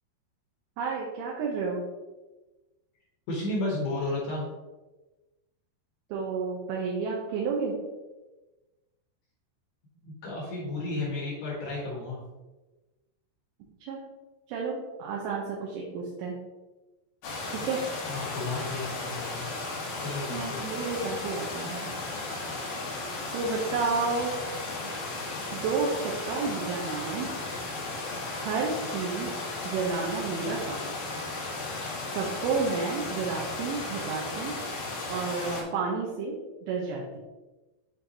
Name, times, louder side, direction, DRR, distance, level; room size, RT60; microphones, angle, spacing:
voice 1, 0.8-1.8 6.1-7.7 13.8-14.0 14.5-16.4 17.5-17.8 20.3-21.9 23.3-24.3 25.5-27.3 28.4-29.3 29.6-30.8 32.1-34.5 35.1-36.4 36.7-37.0, right 4 dB, 80° right, -2 dB, 3.2 m, -31 dB
voice 2, 3.3-4.5 10.0-12.2 18.1-19.5 20.0-20.6, left 2 dB, 65° left, -5 dB, 2.8 m, -33 dB
sound 1, 17.2-35.6, left 3 dB, 90° left, 1.7 m, -35 dB
8.8 x 4.6 x 2.8 m, 1.1 s
omnidirectional pair, 5.9 m